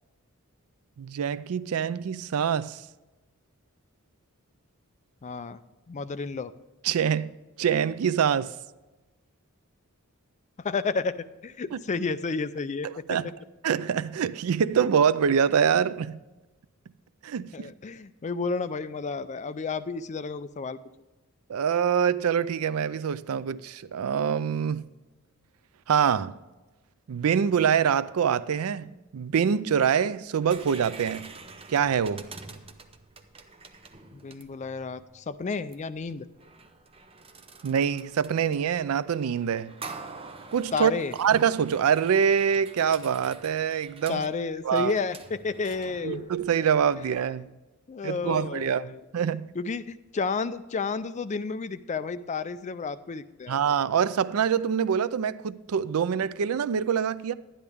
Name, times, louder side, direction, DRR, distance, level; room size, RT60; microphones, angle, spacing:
voice 1, 1.0-2.8 6.8-8.5 13.1-13.3 13.6-16.2 17.2-17.7 21.5-24.8 25.9-26.4 27.1-31.3 31.7-32.3 37.6-39.7 40.5-40.9 41.2-44.2 44.6-44.9 46.0-47.5 48.0-48.8 49.1-49.5 53.5-57.3, right 7 dB, 75° right, 0.4 m, -25 dB
voice 2, 5.2-5.6 5.9-6.5 10.6-11.2 11.4-13.0 17.5-20.8 34.1-36.3 40.7-41.1 44.1-46.3 47.9-49.0 49.5-53.6, left 4 dB, 35° left, 0.4 m, -31 dB
sound 1, 30.4-47.3, right 4 dB, 25° right, 0.7 m, -47 dB
12.0 x 10.0 x 3.5 m
head